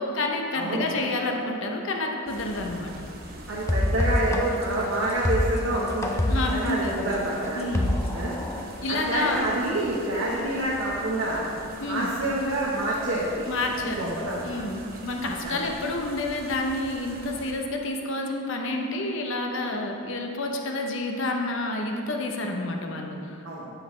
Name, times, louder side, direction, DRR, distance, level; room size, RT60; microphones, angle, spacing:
voice 1, 0.0-2.9 6.3-7.0 7.6-8.0 8.8-9.5 11.8-12.1 13.5-23.4, left 2 dB, 60° left, 2 dB, 0.8 m, -29 dB
voice 2, 0.5-1.1 3.5-6.2 6.5-7.6 8.1-8.4 8.9-11.5 11.8-13.3 13.8-14.6 15.4-15.6 23.4-23.7, right 1 dB, 65° right, -6 dB, 1.2 m, -27 dB
sound 1, 2.3-17.5, right 2 dB, 45° right, 0.9 m, -44 dB
sound 2, 3.7-8.6, left 1 dB, 15° left, 0.4 m, -26 dB
9.6 x 7.4 x 3.3 m, 2.6 s
head